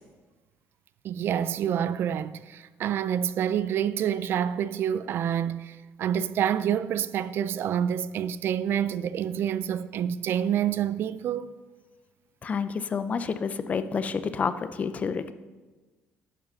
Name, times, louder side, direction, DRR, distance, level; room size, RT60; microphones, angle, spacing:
voice 1, 1.0-11.5, right 9 dB, 55° right, 0.3 m, -27 dB
voice 2, 12.4-15.3, left 5 dB, 30° left, 0.4 m, -29 dB
10.5 x 4.9 x 6.3 m
cardioid pair, 150°, 5 cm